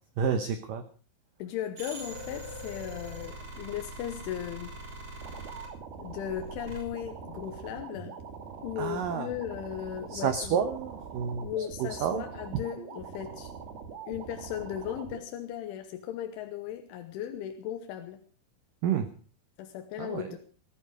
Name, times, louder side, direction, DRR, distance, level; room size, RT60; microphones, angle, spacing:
voice 1, 0.2-0.8 8.8-9.3 10.1-11.5 11.8-12.2 18.8-19.1 20.0-20.3, right 7 dB, 80° right, 9 dB, 1.9 m, -29 dB
voice 2, 1.4-4.8 6.0-8.2 8.6-10.7 11.4-13.5 14.1-18.2 19.6-20.4, left 10 dB, 85° left, 6 dB, 3.6 m, -37 dB
sound 1, 1.8-5.7 6.2-6.8, right 1 dB, 35° right, 4.1 m, -42 dB
sound 2, 5.2-15.2, right 6 dB, 60° right, 3.8 m, -43 dB
18.5 x 13.5 x 4.9 m, 0.39 s
omnidirectional pair, 5.4 m